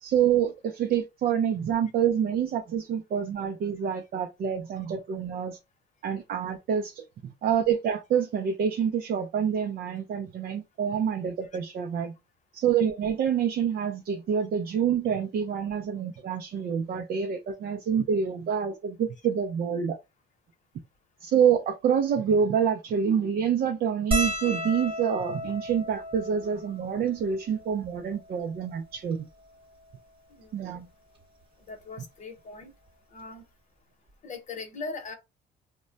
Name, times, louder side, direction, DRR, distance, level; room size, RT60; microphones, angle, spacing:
voice 1, 0.0-5.6 6.0-12.1 12.5-20.0 21.2-29.3 30.5-30.9, right 8 dB, 55° right, 0.5 m, -27 dB
sound 1, 24.1-28.7 29.5-29.6 29.7-29.9 31.2-31.4 32.9-33.0 33.2-33.4, equal, 30° right, 0.9 m, -34 dB
voice 2, 31.7-32.7 33.1-33.4 34.2-35.2, left 3 dB, 40° left, 0.9 m, -39 dB
2.2 x 2.1 x 3.7 m
cardioid pair, 110°, 19 cm